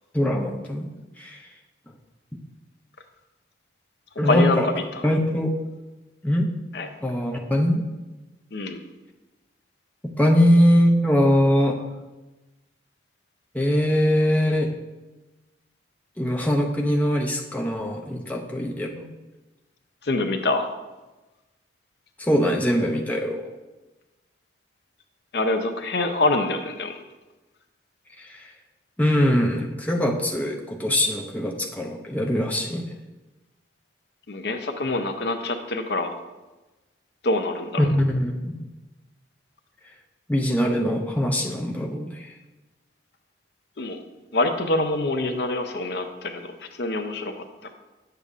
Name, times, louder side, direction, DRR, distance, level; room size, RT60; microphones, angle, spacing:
voice 1, 0.1-1.4 4.2-4.7 5.0-5.5 6.2-6.5 7.0-7.8 10.2-11.8 13.5-14.7 16.2-19.1 22.2-23.4 28.2-28.5 29.0-32.9 37.8-38.6 40.3-42.3, equal, 10° left, 0 dB, 0.5 m, -22 dB
voice 2, 4.3-4.6 6.7-6.9 8.5-8.8 20.0-20.7 25.3-27.0 34.3-36.1 37.2-37.9 43.8-44.0 44.3-46.5 46.8-47.3, left 2 dB, 65° left, 6 dB, 0.6 m, -25 dB
9.0 x 6.7 x 2.4 m, 1.1 s
head